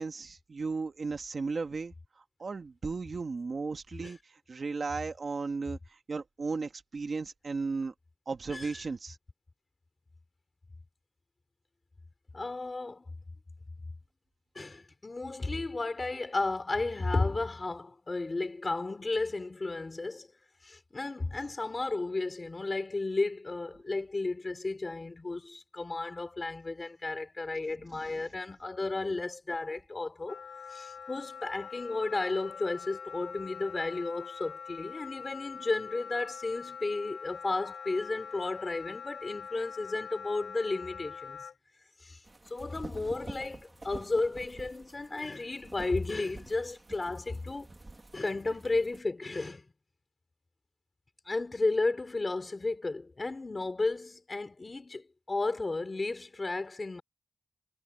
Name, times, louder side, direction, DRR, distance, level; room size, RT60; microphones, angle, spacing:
voice 1, 0.0-1.9 2.4-4.2 4.5-7.9 8.3-9.2 28.0-28.1, right 4 dB, 45° right, 1.8 m, -35 dB
voice 2, 12.3-13.0 14.5-20.3 20.6-30.4 30.7-41.5 42.0-42.2 42.5-47.7 48.1-49.7 51.3-57.0, left 3 dB, 30° left, 3.1 m, -33 dB
Wind instrument woodwind instrument, 30.3-41.5, left 6 dB, 90° left, 7.8 m, -44 dB
sound 1, 42.2-49.0, right 2 dB, 25° right, 1.8 m, -48 dB
wide cardioid pair, 150°, 0 cm